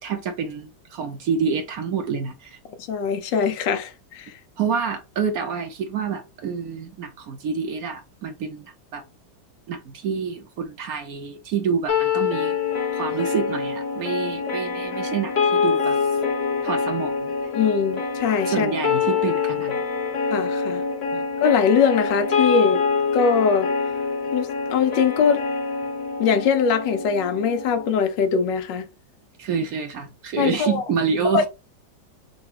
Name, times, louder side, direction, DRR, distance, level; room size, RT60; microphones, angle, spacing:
voice 1, 0.0-2.6 4.6-9.0 9.7-12.6 12.9-16.0 16.6-17.3 18.5-19.8 21.1-21.2 29.4-31.5, right 6 dB, 65° right, 1.0 m, -27 dB
voice 2, 2.9-4.3 17.5-18.7 20.3-20.8 21.4-22.8 23.1-23.7 24.3-25.4 26.2-28.9 30.4-30.8 31.3-31.4, left 6 dB, 80° left, 1.4 m, -21 dB
sound 1, 11.9-27.9, left 5 dB, 50° left, 0.9 m, -25 dB
3.9 x 2.3 x 4.6 m
omnidirectional pair, 1.9 m